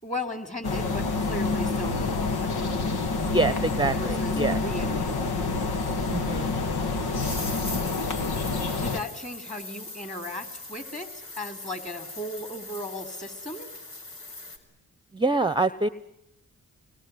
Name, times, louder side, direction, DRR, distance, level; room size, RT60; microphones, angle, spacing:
voice 1, 0.0-2.6 4.0-5.2 8.8-13.7, left 1 dB, 20° left, 9 dB, 3.9 m, -36 dB
sound 1, 0.6-9.0, left 3 dB, 90° left, 1.7 m, -27 dB
voice 2, 3.2-4.6 6.1-6.5 15.1-15.9, right 3 dB, 10° right, 16 dB, 0.9 m, -25 dB
sound 2, 7.0-14.6, left 2 dB, 70° left, 4.6 m, -41 dB
25.0 x 22.0 x 9.5 m, 0.82 s
cardioid pair, 55°, 37 cm